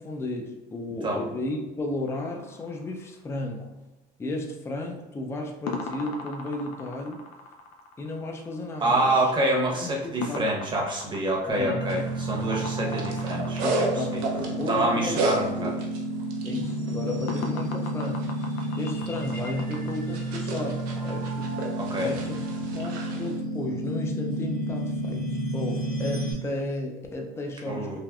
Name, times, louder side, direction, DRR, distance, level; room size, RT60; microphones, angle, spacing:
voice 1, 0.0-3.7 4.2-7.2 8.0-9.3 9.8-10.5 11.5-11.8 12.5-12.8 13.1-13.2 13.6-15.7 16.4-18.3 18.8-21.4 21.9-22.5 22.7-28.0, left 2 dB, 15° left, 2 dB, 0.4 m, -34 dB
sound 1, 2.1-3.5 5.7-14.3 17.3-19.9, left 4 dB, 90° left, 0.4 m, -39 dB
voice 2, 8.8-13.9 14.7-15.7 21.8-22.1 27.7-28.0, right 1 dB, 25° right, -1 dB, 0.9 m, -26 dB
sound 2, 11.5-26.3, right 1 dB, 70° left, 1.3 m, -31 dB
sound 3, 11.9-23.4, right 3 dB, 75° right, 0.7 m, -34 dB
3.4 x 2.2 x 2.3 m, 1.1 s
supercardioid pair, 100°, 17 cm